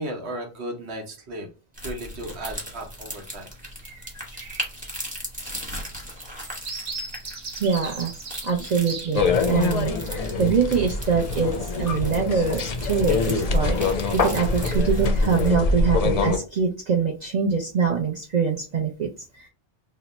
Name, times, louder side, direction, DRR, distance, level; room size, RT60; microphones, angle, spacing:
voice 1, 0.0-1.5 1.8-3.5, right 1 dB, 90° right, 3 dB, 1.1 m, -35 dB
sound 1, 1.7-15.6, equal, 10° right, 0.9 m, -38 dB
sound 2, 2.2-2.8 3.3-3.5 3.8-9.8 10.3-10.9, right 4 dB, 65° right, 1.0 m, -39 dB
voice 2, 7.6-8.1 8.4-13.8 14.1-19.1 19.3-19.5, right 6 dB, 50° right, -1 dB, 0.5 m, -24 dB
sound 3, 9.2-16.4, left 3 dB, 55° left, 0.4 m, -24 dB
2.9 x 2.1 x 4.0 m, 0.34 s
omnidirectional pair, 1.1 m